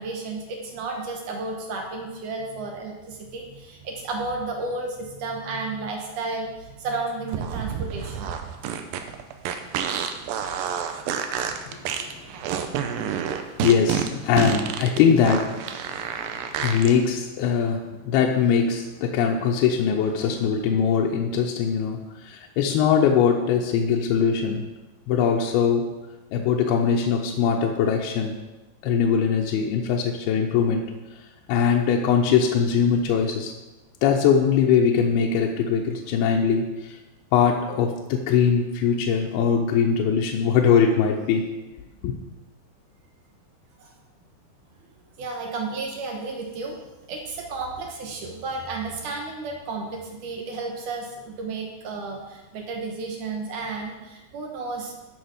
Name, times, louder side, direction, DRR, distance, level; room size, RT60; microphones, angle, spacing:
voice 1, 0.0-8.4 9.6-9.7 43.8-43.9 45.2-46.8 47.1-54.9, right 3 dB, 70° right, 1 dB, 2.1 m, -32 dB
sound 1, 7.3-16.9, right 8 dB, 85° right, 2.0 m, -29 dB
voice 2, 13.6-15.7 16.6-24.7 25.1-25.9 26.3-28.4 28.8-30.9 31.5-33.5 34.0-37.0 37.3-41.5 42.0-42.1, left 7 dB, 80° left, 0 dB, 2.5 m, -21 dB
12.5 x 6.2 x 5.0 m, 1.1 s
omnidirectional pair, 4.9 m